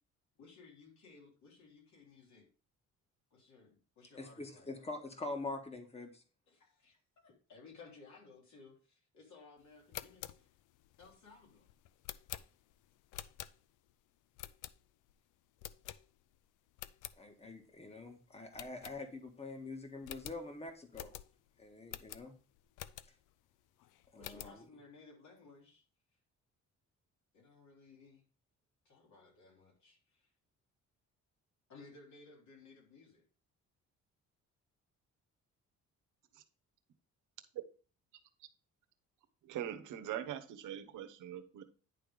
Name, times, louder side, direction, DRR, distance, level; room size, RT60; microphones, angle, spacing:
voice 1, 0.4-2.5 3.3-4.7 6.5-10.5 11.0-11.7 24.2-25.8 27.3-28.2 28.8-30.3 31.7-33.2, left 4 dB, 70° left, -1 dB, 3.3 m, -58 dB
voice 2, 4.2-6.2 17.2-21.2 21.6-22.3 24.1-24.6, left 2 dB, 20° left, 5 dB, 1.7 m, -45 dB
sound 1, 9.7-13.9 14.4-15.1 15.6-16.4 16.7-17.2 17.6-17.7 18.0-18.1 18.5-19.4 19.7-19.8 20.0-23.3 23.8-24.6, left 14 dB, 90° left, 0.5 m, -49 dB
voice 3, 39.4-41.6, right 11 dB, 85° right, 7 dB, 1.1 m, -42 dB
10.0 x 3.5 x 5.1 m, 0.37 s
cardioid pair, 90°, 30 cm